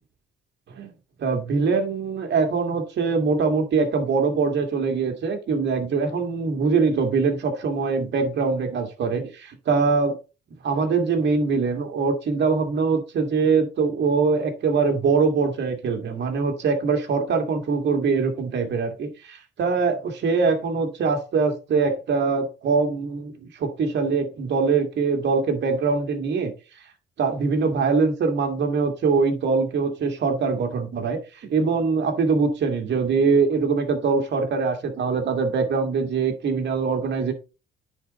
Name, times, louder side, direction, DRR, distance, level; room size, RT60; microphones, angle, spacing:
voice 1, 1.2-10.2 10.6-26.5 27.2-37.3, right 4 dB, 60° right, 2.1 m, -23 dB
9.9 x 4.4 x 4.1 m
cardioid pair, 90°, 20 cm